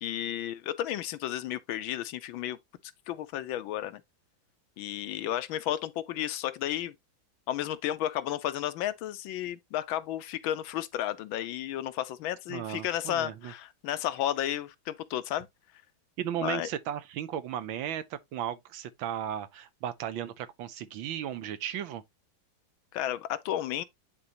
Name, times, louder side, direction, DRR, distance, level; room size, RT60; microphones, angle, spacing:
voice 1, 0.0-2.6 3.1-4.0 4.8-6.9 7.5-15.5 16.4-16.7 22.9-23.8, left 12 dB, 90° left, 1.5 m, -33 dB
voice 2, 12.5-13.5 16.2-22.0, right 10 dB, 80° right, 1.6 m, -35 dB
9.6 x 3.9 x 3.0 m
omnidirectional pair, 2.2 m